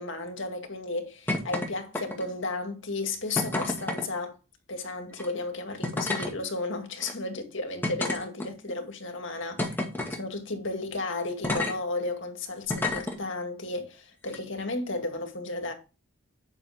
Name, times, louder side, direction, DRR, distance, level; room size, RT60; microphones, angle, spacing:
voice 1, 0.0-4.4 4.7-9.8 10.1-15.7, left 3 dB, 60° left, 2.1 m, -33 dB
sound 1, 1.3-1.7 1.9-2.4 3.4-4.1 5.1-5.3 5.8-6.3 7.0-7.1 7.8-8.7 9.6-10.2 11.4-11.7 12.7-13.2 14.2-14.4, left 2 dB, 10° left, 1.9 m, -30 dB
10.5 x 6.1 x 3.6 m
head